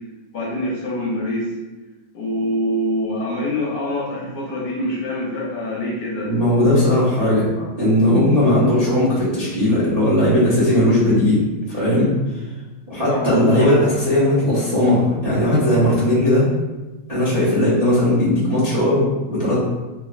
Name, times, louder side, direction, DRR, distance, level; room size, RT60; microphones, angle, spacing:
voice 1, 0.3-1.5 2.1-6.3 7.6-7.7 13.1-13.7, left 1 dB, 65° left, -5 dB, 1.1 m, -25 dB
voice 2, 6.2-7.5 7.8-12.1 12.9-16.4 17.1-19.6, left 1 dB, 55° right, -11 dB, 0.4 m, -17 dB
3.3 x 3.1 x 2.3 m, 1.2 s
omnidirectional pair, 2.3 m